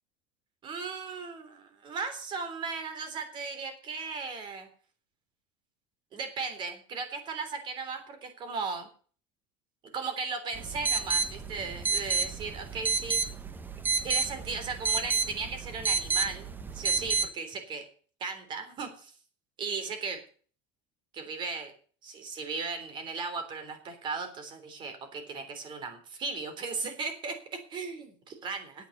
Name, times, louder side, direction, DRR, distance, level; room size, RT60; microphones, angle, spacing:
voice 1, 0.6-4.7 6.1-8.9 9.9-13.2 14.0-17.8 18.2-19.1 19.6-20.2 21.1-21.7 22.0-28.9, right 4 dB, 30° right, 7 dB, 3.4 m, -36 dB
sound 1, 10.5-17.3, right 4 dB, 10° right, 0.9 m, -30 dB
9.6 x 8.6 x 8.0 m, 0.43 s
supercardioid pair, 155°, 16 cm